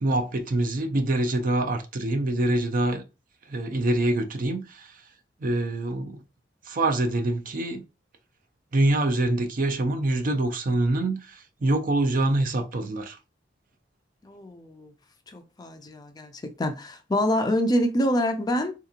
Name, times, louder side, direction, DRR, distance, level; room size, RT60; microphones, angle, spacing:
voice 1, 0.0-3.0 3.5-4.9 5.4-6.2 6.7-7.8 8.7-13.2, right 2 dB, 50° right, 0.5 m, -25 dB
voice 2, 14.2-14.9 15.3-18.7, equal, 20° left, 0.4 m, -26 dB
3.6 x 2.8 x 2.4 m
head